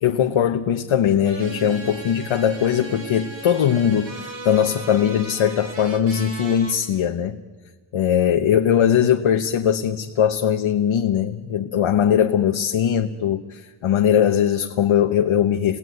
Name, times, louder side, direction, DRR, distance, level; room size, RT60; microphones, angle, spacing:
voice 1, 0.0-4.1 4.4-7.4 7.9-15.8, left 9 dB, 80° left, 4 dB, 1.1 m, -20 dB
sound 1, 1.2-6.7, right 3 dB, 65° right, 3.0 m, -37 dB
28.5 x 19.0 x 9.3 m, 1.3 s
wide cardioid pair, 165°, 49 cm